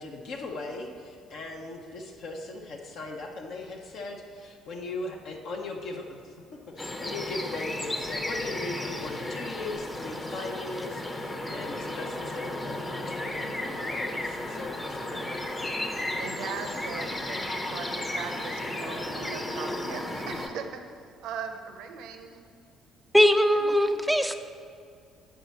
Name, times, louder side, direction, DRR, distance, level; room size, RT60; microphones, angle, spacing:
voice 1, 0.0-6.3 6.7-15.3, left 2 dB, 55° left, 1 dB, 0.7 m, -39 dB
sound 1, 6.8-20.5, left 1 dB, 20° left, 0.8 m, -34 dB
voice 2, 16.2-20.8 21.2-22.4 23.5-23.7, right 6 dB, 60° right, 6 dB, 0.6 m, -39 dB
voice 3, 23.1-24.3, equal, ahead, 7 dB, 0.4 m, -21 dB
8.9 x 4.7 x 4.1 m, 2.3 s
figure-of-eight pair, 50°, 0 cm